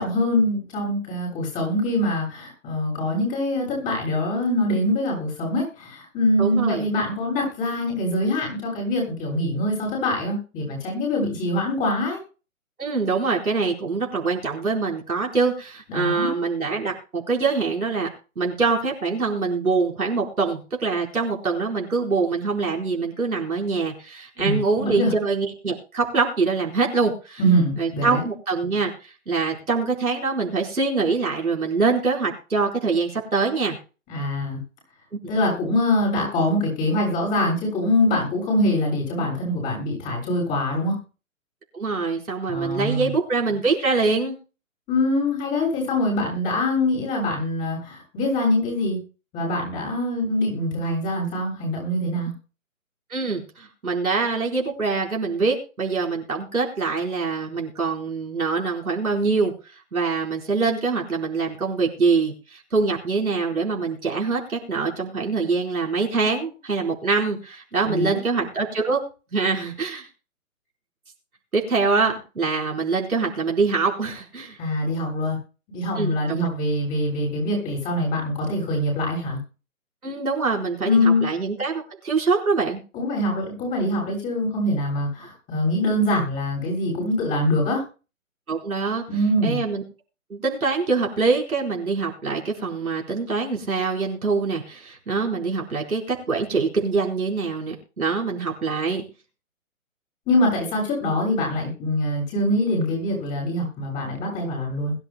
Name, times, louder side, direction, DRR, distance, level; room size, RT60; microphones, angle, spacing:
voice 1, 0.0-12.2 15.9-16.3 24.4-25.1 27.4-28.2 34.1-34.6 35.3-41.0 42.5-43.1 44.9-49.0 49.3-52.3 67.8-68.2 74.6-75.4 75.7-79.4 80.8-81.3 82.9-87.8 89.1-89.6 100.3-104.9, left 1 dB, 20° left, -2 dB, 7.2 m, -24 dB
voice 2, 6.4-6.9 12.8-18.1 18.4-27.4 27.8-33.8 35.1-35.2 41.7-44.4 53.1-59.5 59.9-69.0 69.3-70.1 71.5-74.6 76.0-76.5 80.0-82.8 88.5-89.0 89.4-89.8 90.3-99.0, right 4 dB, 90° right, -1 dB, 4.6 m, -24 dB
21.5 x 11.0 x 2.2 m, 0.34 s
hypercardioid pair, 150°, 42 cm